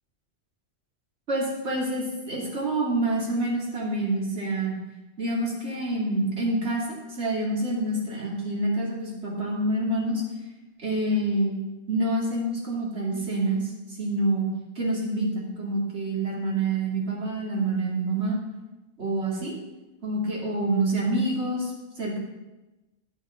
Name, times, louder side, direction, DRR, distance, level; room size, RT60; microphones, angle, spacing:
voice 1, 1.3-4.8 5.2-10.2 10.8-11.5 11.9-13.6 13.9-14.5 14.7-18.4 19.0-19.5 20.0-22.2, right 2 dB, 70° right, -4 dB, 3.1 m, -27 dB
12.0 x 6.9 x 5.9 m, 1.1 s
omnidirectional pair, 1.2 m